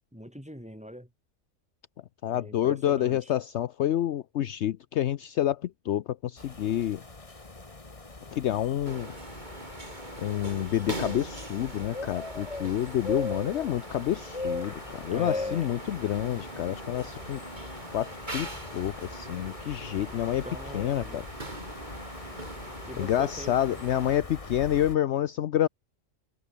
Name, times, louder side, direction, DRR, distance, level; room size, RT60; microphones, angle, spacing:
voice 1, 0.1-1.1 2.3-3.3 15.1-15.7 20.4-21.3 22.9-23.5, equal, 5° right, 7.7 m, -42 dB
voice 2, 2.2-7.0 8.3-9.1 10.2-17.4 17.9-20.4 20.7-21.2 23.0-25.7, left 11 dB, 65° left, 0.9 m, -28 dB
sound 1, 6.4-25.0, left 3 dB, 25° left, 1.8 m, -40 dB
sound 2, 8.8-24.2, right 1 dB, 35° right, 4.4 m, -42 dB
omnidirectional pair, 1.3 m